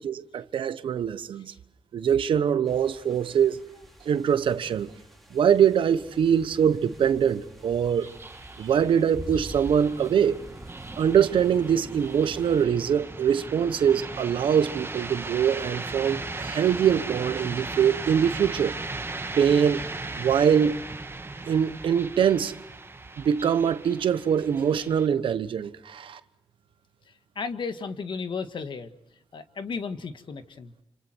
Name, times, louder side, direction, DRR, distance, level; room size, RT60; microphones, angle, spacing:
voice 1, 0.0-1.5 1.9-3.7 4.0-4.9 5.3-8.1 8.6-10.4 11.0-18.8 19.4-19.8 20.1-20.8 21.5-22.6 23.2-26.2, right 8 dB, 85° right, 1.1 m, -23 dB
sound 1, 2.7-12.6, equal, ahead, 5.5 m, -46 dB
sound 2, 6.1-25.1, right 3 dB, 30° right, 1.3 m, -38 dB
voice 2, 27.4-28.9 29.3-30.7, left 5 dB, 70° left, 1.8 m, -34 dB
29.0 x 27.0 x 4.6 m
cardioid pair, 60°, 9 cm